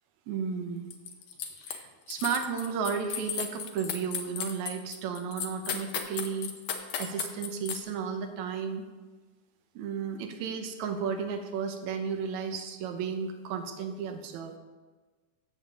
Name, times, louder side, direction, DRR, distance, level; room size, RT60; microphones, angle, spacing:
voice 1, 0.3-0.9 1.7-6.5 7.0-8.8 9.8-14.6, right 6 dB, 75° right, 6 dB, 2.1 m, -33 dB
sound 1, 0.9-1.8 2.1-7.8, left 8 dB, 80° left, 2.5 m, -35 dB
16.0 x 7.3 x 3.7 m, 1.4 s
omnidirectional pair, 3.6 m